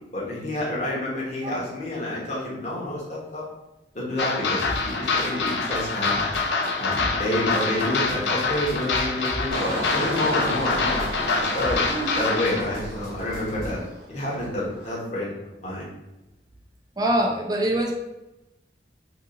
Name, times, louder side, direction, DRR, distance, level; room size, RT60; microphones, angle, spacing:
voice 1, 0.1-3.4 3.9-6.3 6.8-11.0 11.3-11.8 12.2-13.8 14.1-15.3 15.6-15.9, left 1 dB, 40° left, -6 dB, 1.1 m, -28 dB
sound 1, 4.2-12.6, left 4 dB, 75° left, 0.4 m, -26 dB
sound 2, 4.6-13.8, equal, 20° left, 0.9 m, -40 dB
Engine, 9.5-14.2 14.5-14.9, right 1 dB, 70° right, 0.8 m, -33 dB
voice 2, 17.0-17.9, right 1 dB, 20° right, 0 dB, 0.5 m, -24 dB
2.7 x 2.4 x 3.7 m, 0.96 s
head